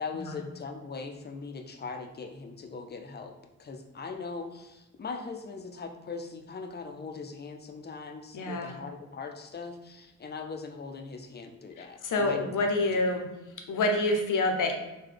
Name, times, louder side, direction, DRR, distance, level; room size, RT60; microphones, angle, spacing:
voice 1, 0.0-12.5, left 4 dB, 35° left, 4 dB, 0.4 m, -40 dB
voice 2, 8.3-8.7 11.8-13.3 13.7-14.7, left 2 dB, 75° left, 4 dB, 0.6 m, -27 dB
3.8 x 2.2 x 3.2 m, 1.0 s
cardioid pair, 80°, 31 cm